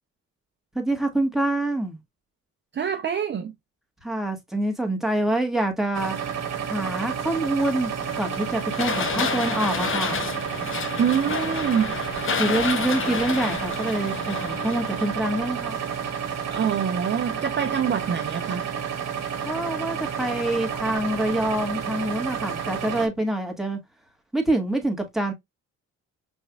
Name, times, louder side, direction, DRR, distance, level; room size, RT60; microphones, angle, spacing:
voice 1, 0.8-2.0 4.0-6.2 6.6-10.2 12.4-15.8 19.4-23.8 24.3-25.3, right 1 dB, ahead, 1.8 m, -26 dB
voice 2, 2.7-3.5 11.0-12.0 16.5-18.7, right 8 dB, 40° right, 0.6 m, -25 dB
sound 1, 5.9-23.1, right 7 dB, 60° right, 1.3 m, -30 dB
sound 2, 8.0-15.6, left 6 dB, 45° left, 0.9 m, -30 dB
5.4 x 3.5 x 2.2 m
cardioid pair, 90°, 30 cm